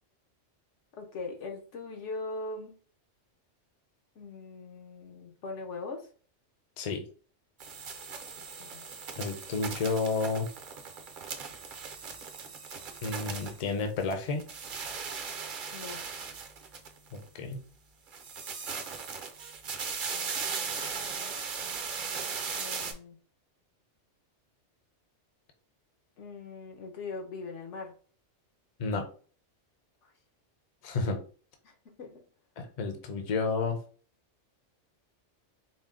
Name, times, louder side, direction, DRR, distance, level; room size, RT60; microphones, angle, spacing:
voice 1, 0.9-2.8 4.1-6.1 8.6-8.9 15.7-16.0 20.1-21.3 21.6-23.2 26.2-27.9 30.0-30.1 31.6-32.2, left 3 dB, 75° left, 2 dB, 1.2 m, -42 dB
sound 1, 7.6-14.1 14.4-17.2 18.1-22.9, right 5 dB, 55° right, 0.7 m, -38 dB
voice 2, 9.2-10.5 13.0-14.4 17.1-17.6 28.8-29.0 30.8-31.2 32.6-33.8, left 4 dB, 40° left, 5 dB, 0.6 m, -31 dB
4.1 x 2.1 x 3.6 m, 0.40 s
omnidirectional pair, 1.2 m